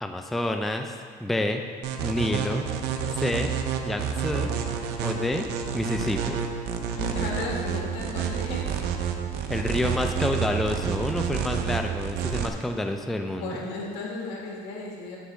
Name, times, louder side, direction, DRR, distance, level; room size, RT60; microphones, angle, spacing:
voice 1, 0.0-1.6 2.0-2.6 3.1-3.5 3.8-4.5 5.0-5.4 5.7-6.4 9.5-13.6, left 1 dB, ahead, 5 dB, 0.3 m, -28 dB
sound 1, 1.8-12.5, right 8 dB, 75° right, 0.6 m, -29 dB
voice 2, 7.0-8.6 12.8-12.9 13.3-15.2, left 3 dB, 90° left, -2 dB, 1.6 m, -34 dB
8.1 x 3.1 x 5.8 m, 2.2 s
cardioid pair, 130°, 17 cm